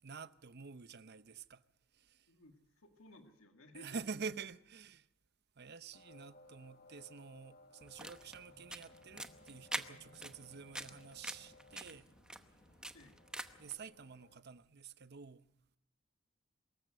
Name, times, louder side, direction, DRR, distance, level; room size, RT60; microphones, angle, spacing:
voice 1, 0.0-1.6 1.9-2.3 3.7-5.1 5.6-12.1 13.6-15.5, right 5 dB, 50° right, 0.7 m, -48 dB
voice 2, 2.3-3.9 12.9-13.2, left 1 dB, 80° left, 1.8 m, -58 dB
sound 1, 5.9-14.4, left 2 dB, 50° left, 1.6 m, -62 dB
sound 2, 7.8-13.7, right 1 dB, 5° right, 0.9 m, -46 dB
23.5 x 14.0 x 7.9 m
head